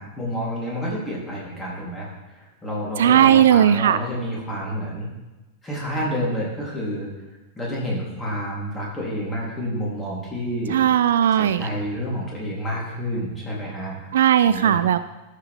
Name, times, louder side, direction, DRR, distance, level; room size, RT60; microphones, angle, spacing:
voice 1, 0.0-2.1 2.3-5.1 5.6-7.1 7.6-10.8 11.4-14.0 14.4-14.8, equal, 10° left, -5 dB, 3.7 m, -29 dB
voice 2, 3.0-4.0 10.7-11.7 14.1-15.0, right 10 dB, 60° right, 13 dB, 0.3 m, -17 dB
13.5 x 6.5 x 3.7 m, 1.1 s
figure-of-eight pair, 90°, 0 cm